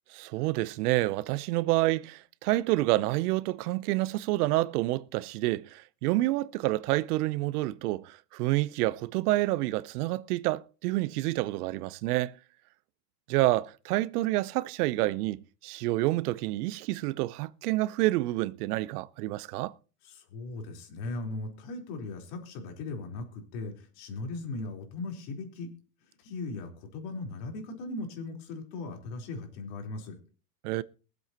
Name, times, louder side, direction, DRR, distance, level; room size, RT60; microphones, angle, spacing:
voice 1, 0.1-12.3 13.3-19.7 30.6-30.8, right 18 dB, 70° right, 0.8 m, -28 dB
voice 2, 20.0-25.7 26.2-30.2, left 3 dB, 60° left, 4.1 m, -38 dB
22.5 x 8.0 x 2.9 m
supercardioid pair, 120°, 46 cm